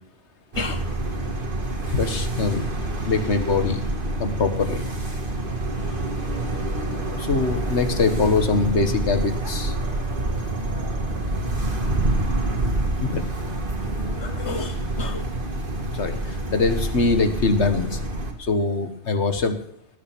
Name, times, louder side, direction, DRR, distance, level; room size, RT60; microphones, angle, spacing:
voice 1, 0.5-0.8 1.9-2.8 3.1-3.8 4.2-4.9 5.8-6.0 7.2-9.8 12.7-13.2 14.2-15.3 15.9-18.0 18.4-19.6, left 4 dB, 70° left, 8 dB, 1.7 m, -24 dB
sound 1, 0.5-18.3, right 2 dB, 45° right, 1.9 m, -27 dB
18.0 x 7.2 x 6.1 m, 0.71 s
omnidirectional pair, 1.2 m